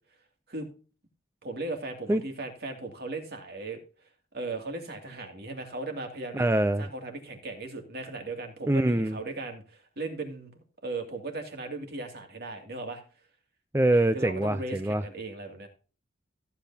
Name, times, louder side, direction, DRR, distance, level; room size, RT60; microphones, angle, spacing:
voice 1, 1.4-3.8 4.3-6.5 6.8-13.0 14.1-15.7, right 3 dB, 55° right, 2.6 m, -37 dB
voice 2, 6.3-6.9 8.7-9.2 13.7-15.0, right 1 dB, 15° right, 0.4 m, -24 dB
15.0 x 8.3 x 2.8 m
head